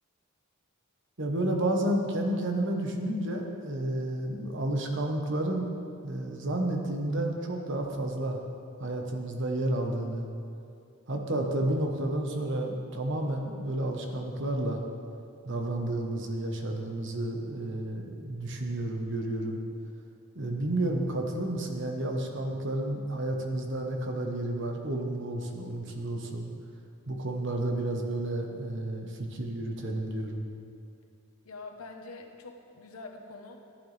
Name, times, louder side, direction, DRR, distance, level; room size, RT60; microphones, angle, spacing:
voice 1, 1.2-5.7 6.0-8.4 8.8-10.3 11.1-14.8 15.4-19.6 20.3-26.5 27.1-30.5, right 1 dB, 55° right, 2 dB, 1.2 m, -31 dB
voice 2, 31.4-33.6, left 3 dB, 90° left, 3 dB, 1.1 m, -45 dB
14.5 x 9.3 x 3.4 m, 2.6 s
head